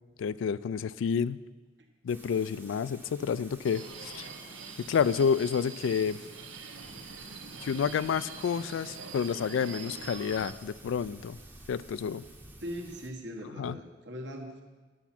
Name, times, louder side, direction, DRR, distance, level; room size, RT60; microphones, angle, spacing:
voice 1, 0.2-1.4 2.0-4.3 4.8-6.2 7.6-11.4 11.7-12.2 13.6-13.8, left 6 dB, 80° left, 18 dB, 0.3 m, -29 dB
Thunder / Rain, 2.1-13.1, right 2 dB, 10° right, 0.7 m, -52 dB
Subway metro underground, 3.6-10.5, right 5 dB, 90° right, 0.9 m, -44 dB
voice 2, 12.6-14.6, equal, 65° right, 2 dB, 1.3 m, -40 dB
10.0 x 7.1 x 5.9 m, 1.3 s
head